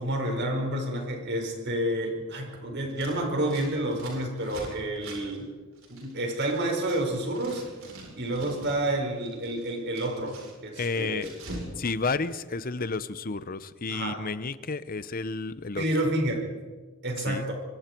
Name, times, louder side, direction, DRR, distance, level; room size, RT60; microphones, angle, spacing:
voice 1, 0.0-5.5 5.9-7.7 8.2-11.3 13.9-14.2 15.8-16.5 17.0-17.5, right 1 dB, 55° right, 2 dB, 5.1 m, -29 dB
Scissors, 2.9-7.0 7.2-8.9 9.2-11.7 12.0-12.9, right 1 dB, 75° right, 7.8 m, -44 dB
voice 2, 10.8-11.3 11.8-15.8 17.3-17.5, left 4 dB, 45° left, 15 dB, 0.8 m, -31 dB
25.0 x 24.5 x 4.6 m, 1.4 s
head